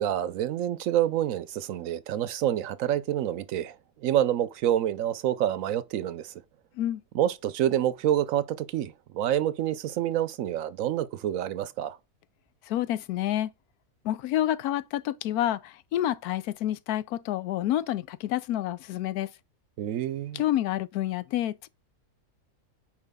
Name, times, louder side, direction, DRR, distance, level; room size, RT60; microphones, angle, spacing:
voice 1, 0.0-3.7 4.0-6.3 7.1-12.0 19.8-20.4, right 11 dB, 70° right, 0.9 m, -27 dB
voice 2, 12.7-13.5 14.0-19.3 20.3-21.7, left 12 dB, 90° left, 1.1 m, -28 dB
9.6 x 4.6 x 3.6 m
omnidirectional pair, 1.5 m